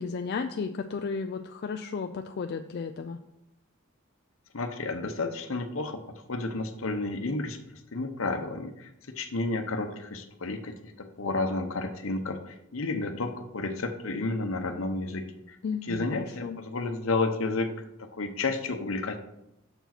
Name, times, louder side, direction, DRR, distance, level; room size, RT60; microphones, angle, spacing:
voice 1, 0.0-3.2 15.6-16.6, left 5 dB, 50° left, 6 dB, 0.4 m, -34 dB
voice 2, 4.5-6.0 6.3-7.6 7.9-8.9 9.2-10.8 11.2-15.6 15.8-17.7 18.2-19.2, left 3 dB, 70° left, 7 dB, 0.8 m, -31 dB
6.7 x 4.7 x 5.9 m, 0.85 s
head